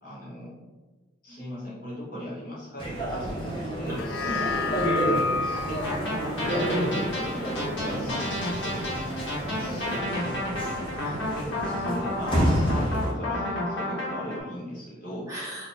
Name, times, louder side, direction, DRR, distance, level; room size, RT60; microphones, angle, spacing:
voice 1, 0.0-0.5 1.2-4.4 5.1-5.3 5.7-5.9 6.2-8.3 8.6-8.9 9.4-10.4 11.4-15.3, equal, 45° left, -7 dB, 1.1 m, -38 dB
sound 1, 2.8-13.1, equal, 25° left, 0.7 m, -30 dB
sound 2, 3.9-8.4 8.9-9.0, left 4 dB, 85° left, 0.3 m, -32 dB
voice 2, 4.4-5.3 7.8-8.0 9.9-10.2 10.9-11.2 15.3-15.7, equal, 15° right, -8 dB, 1.0 m, -41 dB
sound 3, 5.8-14.4, left 1 dB, 70° left, 1.1 m, -31 dB
2.8 x 2.5 x 3.9 m, 1.2 s
head